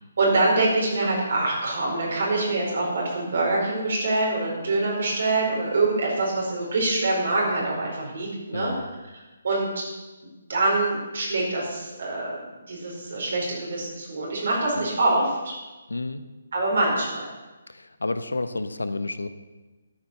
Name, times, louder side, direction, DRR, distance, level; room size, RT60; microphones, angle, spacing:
voice 1, 0.2-8.9 9.1-9.8 10.5-12.4 12.7-15.6 16.5-17.2, right 2 dB, 60° right, -3 dB, 4.9 m, -25 dB
voice 2, 8.5-8.9 14.8-14.9 15.9-16.2 17.7-19.3, left 2 dB, 80° left, 11 dB, 1.1 m, -30 dB
13.0 x 8.6 x 7.0 m, 1.1 s
figure-of-eight pair, 140°, 0 cm